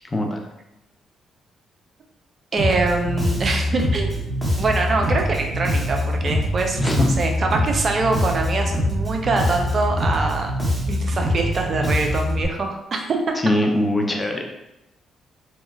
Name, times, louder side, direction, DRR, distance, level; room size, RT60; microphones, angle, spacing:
voice 1, 2.5-4.1 4.6-10.5 10.9-13.4, right 3 dB, 50° right, 2 dB, 0.5 m, -24 dB
Bass guitar, 2.6-12.4, equal, ahead, 1.2 m, -24 dB
voice 2, 6.8-7.1 13.4-14.5, left 1 dB, 25° left, 2 dB, 0.6 m, -21 dB
3.0 x 2.2 x 2.3 m, 0.92 s
hypercardioid pair, 50°, 0 cm